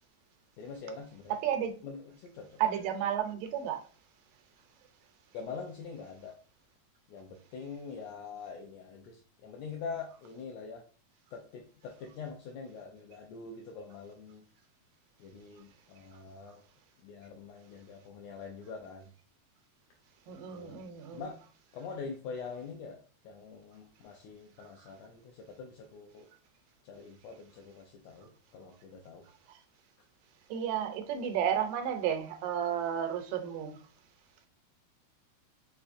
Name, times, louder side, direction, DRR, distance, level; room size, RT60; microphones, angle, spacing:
voice 1, 0.6-1.3 1.8-2.6 5.3-6.3 7.1-10.8 11.3-14.5 15.2-16.6 17.0-19.1 20.3-20.8 21.1-21.3 21.7-23.0 23.2-26.3 26.8-29.3, left 5 dB, 85° left, 1.5 m, -44 dB
voice 2, 1.4-1.8 2.6-3.8 20.3-21.2 29.5-29.6 30.5-33.8, right 9 dB, 90° right, 2.3 m, -32 dB
5.5 x 3.4 x 2.5 m
omnidirectional pair, 3.6 m